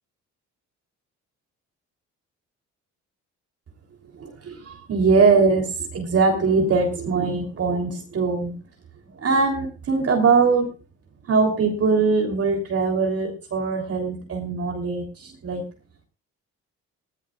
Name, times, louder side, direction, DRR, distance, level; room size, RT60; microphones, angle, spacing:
voice 1, 4.1-8.6 9.2-10.7 11.3-15.7, right 4 dB, 50° right, 2 dB, 3.5 m, -21 dB
20.5 x 15.5 x 2.4 m, 0.32 s
cardioid pair, 90°, 30 cm